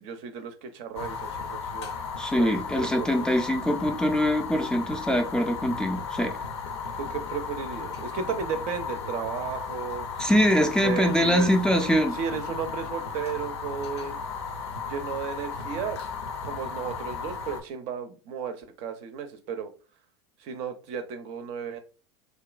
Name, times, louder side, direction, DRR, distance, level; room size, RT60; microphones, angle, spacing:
voice 1, 0.0-1.9 2.3-3.3 7.0-10.1 10.6-11.5 12.1-14.2 14.9-16.0 16.4-19.7 20.4-21.8, right 6 dB, 55° right, 0.5 m, -34 dB
Fire, 1.0-17.6, left 5 dB, 80° left, 0.5 m, -35 dB
voice 2, 2.2-6.4 10.2-12.1, equal, 5° left, 0.3 m, -23 dB
2.8 x 2.3 x 2.4 m
hypercardioid pair, 80°, 14 cm